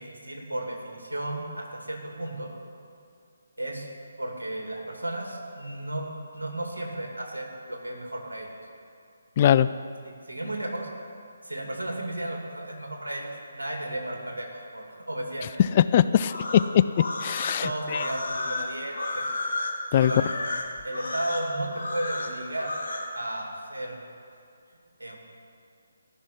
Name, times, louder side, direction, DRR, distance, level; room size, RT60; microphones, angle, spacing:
voice 1, 0.0-2.5 3.6-3.9 4.2-8.5 10.1-10.9 11.4-15.5 17.6-19.3 20.0-20.3 20.8-22.7 23.1-24.0 25.0-25.2, right 1 dB, 75° right, 1 dB, 2.5 m, -34 dB
voice 2, 9.4-9.7 15.7-16.8 17.2-18.0 19.9-20.1, left 10 dB, 30° left, 14 dB, 0.3 m, -21 dB
sound 1, 16.2-23.1, left 2 dB, 60° left, 1.8 m, -32 dB
14.5 x 6.2 x 9.4 m, 2.3 s
figure-of-eight pair, 145°, 0 cm